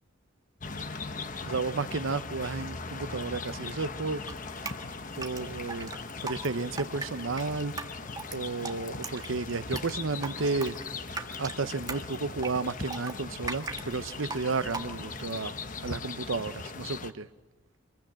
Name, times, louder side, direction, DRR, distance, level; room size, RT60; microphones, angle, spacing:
sound 1, 0.6-17.1, left 4 dB, 40° left, 1.1 m, -39 dB
voice 1, 1.4-4.2 5.2-5.9 6.2-7.7 8.3-10.8 11.4-15.5 15.8-17.3, right 4 dB, 80° right, 0.8 m, -32 dB
Drip, 4.3-15.3, right 3 dB, 20° right, 1.6 m, -40 dB
26.0 x 22.0 x 8.8 m
head